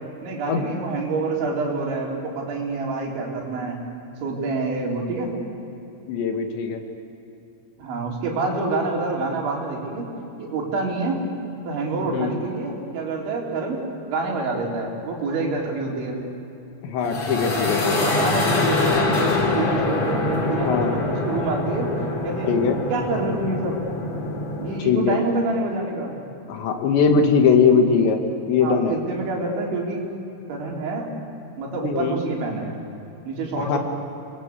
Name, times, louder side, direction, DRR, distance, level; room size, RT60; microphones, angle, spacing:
voice 1, 0.2-3.8 4.2-5.3 7.8-10.1 10.4-11.2 11.7-13.8 14.1-16.2 17.8-21.9 22.2-22.5 22.9-23.8 24.6-26.2 28.6-30.1 30.5-31.1 31.6-32.8 33.3-33.8, right 3 dB, 85° right, -1 dB, 5.9 m, -27 dB
voice 2, 6.1-6.8 12.1-12.4 16.8-18.1 20.6-20.9 22.5-22.8 24.9-25.2 26.5-28.2 28.5-28.9 31.8-32.2 33.6-33.8, left 5 dB, 75° left, 4 dB, 4.1 m, -20 dB
sound 1, 17.0-24.8, left 2 dB, 40° left, 4.2 m, -24 dB
29.5 x 21.0 x 8.4 m, 2.9 s
omnidirectional pair, 5.2 m